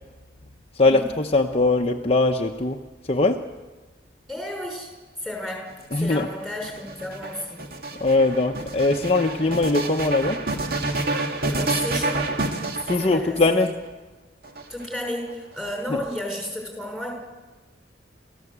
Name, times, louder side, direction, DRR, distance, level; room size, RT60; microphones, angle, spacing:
voice 1, 0.7-2.8 3.1-3.5 5.9-6.3 8.0-10.4 12.9-13.8 15.9-16.0, left 2 dB, 30° left, 2 dB, 0.8 m, -21 dB
voice 2, 4.3-4.9 5.2-5.6 5.9-7.6 11.5-12.2 12.9-13.7 14.7-17.1, left 1 dB, ahead, 0 dB, 5.6 m, -32 dB
sound 1, 5.7-13.6 14.4-15.3, right 2 dB, 50° right, 2.1 m, -28 dB
28.5 x 15.0 x 8.1 m, 1.3 s
head